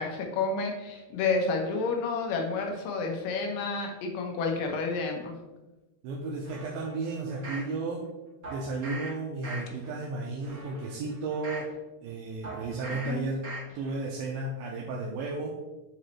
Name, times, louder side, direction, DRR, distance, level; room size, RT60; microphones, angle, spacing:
voice 1, 0.0-5.3 12.9-13.3, left 4 dB, 70° left, 2 dB, 2.2 m, -30 dB
voice 2, 6.0-8.1 8.5-11.7 12.0-15.6, right 3 dB, 80° right, -2 dB, 2.3 m, -33 dB
sound 1, 6.4-7.7 8.4-9.1 9.4-9.9 10.4-11.7 12.4-13.1 13.4-13.9 14.3-14.4, right 2 dB, 30° right, 1.9 m, -41 dB
8.9 x 4.2 x 3.0 m, 1.1 s
omnidirectional pair, 4.6 m